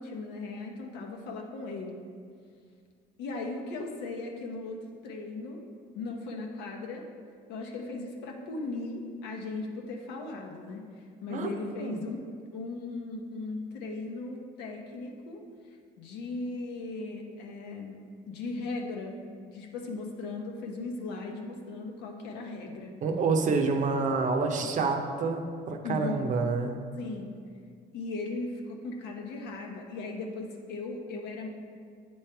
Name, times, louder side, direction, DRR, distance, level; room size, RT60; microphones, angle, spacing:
voice 1, 0.0-2.0 3.2-5.6 5.9-7.1 7.5-12.2 12.5-19.2 19.5-23.0 25.8-26.2 27.0-27.3 27.9-31.5, left 3 dB, 90° left, 1 dB, 0.9 m, -37 dB
voice 2, 23.0-26.8, right 4 dB, 50° right, 4 dB, 0.7 m, -28 dB
8.5 x 3.2 x 4.6 m, 2.1 s
cardioid pair, 110°, 17 cm